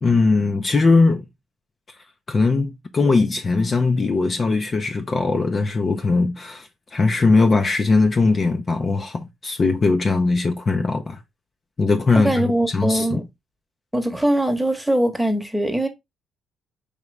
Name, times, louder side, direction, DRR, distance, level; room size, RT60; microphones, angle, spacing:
voice 1, 0.0-1.2 2.3-11.2 11.8-13.2, left 3 dB, 35° left, 0.5 m, -20 dB
voice 2, 12.1-13.2 13.9-15.9, right 1 dB, ahead, 1.0 m, -21 dB
5.0 x 3.0 x 3.3 m
cardioid pair, 90°, 0 cm